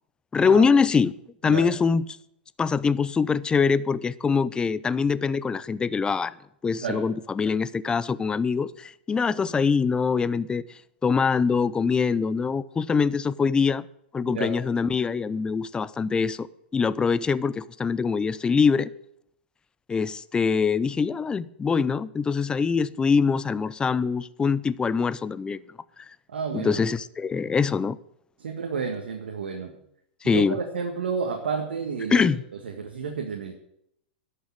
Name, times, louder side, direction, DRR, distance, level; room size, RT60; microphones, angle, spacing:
voice 1, 0.3-1.1 1.4-2.1 2.6-6.3 6.6-10.6 11.0-13.8 14.1-16.5 16.7-18.9 19.9-25.6 26.5-28.0 30.2-30.6 32.1-32.4, left 5 dB, 15° left, 0.5 m, -23 dB
voice 2, 26.3-26.8 28.4-29.7 30.2-32.3 32.6-33.5, right 5 dB, 80° right, 1.8 m, -30 dB
11.0 x 6.8 x 8.9 m
hypercardioid pair, 115°, 6 cm